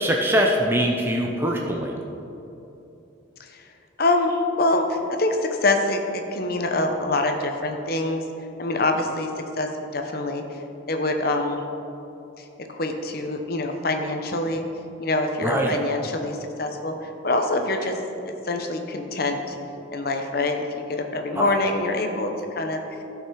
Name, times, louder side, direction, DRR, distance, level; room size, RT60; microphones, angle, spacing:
voice 1, 0.0-1.9 15.4-15.8 21.3-21.5 21.8-22.0, equal, 10° right, 0 dB, 0.6 m, -23 dB
voice 2, 3.4-3.7 4.0-8.2 8.6-11.6 12.4-12.5 12.7-14.6 15.0-18.0 18.3-19.6 19.9-22.8, left 2 dB, 50° left, 4 dB, 0.8 m, -25 dB
12.5 x 5.7 x 4.7 m, 2.9 s
head